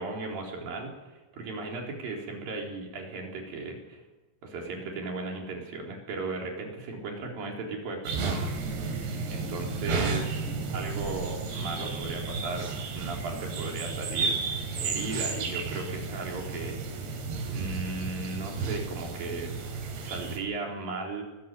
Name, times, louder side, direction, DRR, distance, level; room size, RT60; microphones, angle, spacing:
voice 1, 0.0-4.0 4.4-8.5 9.3-14.4 14.8-16.8 17.5-19.5 20.0-21.2, right 3 dB, 55° right, 0 dB, 5.5 m, -36 dB
sound 1, 8.0-20.4, right 4 dB, 70° right, 5.2 m, -33 dB
22.0 x 14.0 x 9.3 m, 1.1 s
omnidirectional pair, 5.1 m